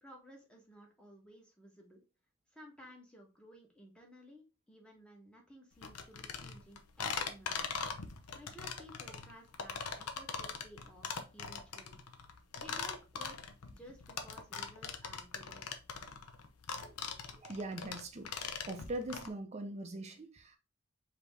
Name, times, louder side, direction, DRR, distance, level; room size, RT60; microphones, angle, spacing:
voice 1, 0.0-2.0 2.5-7.6 8.3-12.0 12.5-13.4 13.7-15.7, equal, 5° left, 1.0 m, -56 dB
sound 1, 5.8-19.3, left 6 dB, 90° left, 0.7 m, -41 dB
voice 2, 17.4-20.6, right 2 dB, 30° right, 0.5 m, -42 dB
5.0 x 2.9 x 3.3 m
head